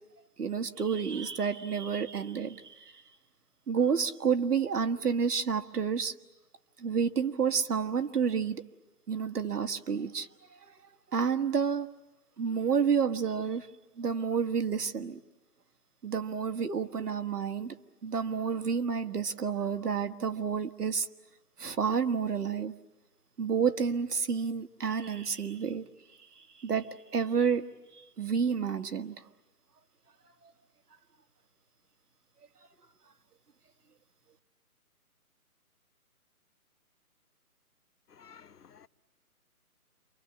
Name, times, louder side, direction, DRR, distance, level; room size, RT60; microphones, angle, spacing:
voice 1, 0.4-3.0 3.7-6.1 6.8-8.6 9.1-10.8 11.1-11.9 12.4-13.7 14.0-15.2 16.0-17.7 18.0-21.1 21.6-22.7 23.4-25.8 26.3-29.3 30.4-30.5, right 6 dB, 80° right, 1.7 m, -30 dB
voice 2, 38.1-38.9, left 7 dB, 85° left, 1.0 m, -54 dB
28.5 x 24.5 x 8.4 m
hypercardioid pair, 165°, 45 cm